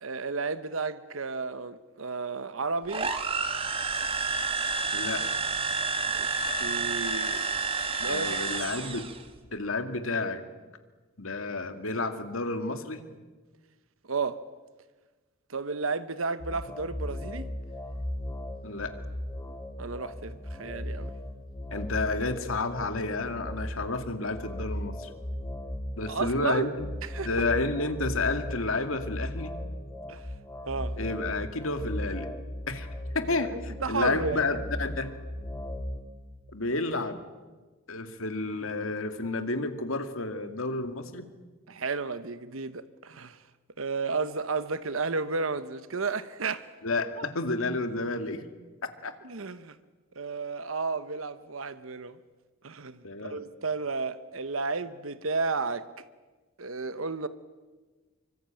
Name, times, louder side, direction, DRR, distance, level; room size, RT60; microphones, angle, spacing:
voice 1, 0.0-3.2 6.1-7.6 8.0-8.6 14.1-14.4 15.5-17.5 19.8-21.1 26.1-26.7 27.0-27.4 30.1-30.3 30.7-31.0 33.2-34.4 41.7-43.4 43.8-46.7 47.2-47.3 49.2-49.8 50.2-52.2 52.6-55.9 56.6-57.3, right 4 dB, 80° right, 1.1 m, -33 dB
sound 1, 2.9-9.2, right 4 dB, 25° right, 1.8 m, -30 dB
voice 2, 4.9-5.2 8.1-9.1 9.5-10.4 11.2-13.0 18.6-19.0 21.7-25.1 26.0-26.7 27.2-29.5 31.0-32.3 32.7-32.9 33.1-35.1 36.5-37.2 37.9-41.3 46.8-48.4 49.0-49.1 53.0-53.4, left 3 dB, 85° left, 2.3 m, -30 dB
sound 2, 16.4-36.0, left 1 dB, 15° left, 3.2 m, -37 dB
25.5 x 24.0 x 9.1 m
head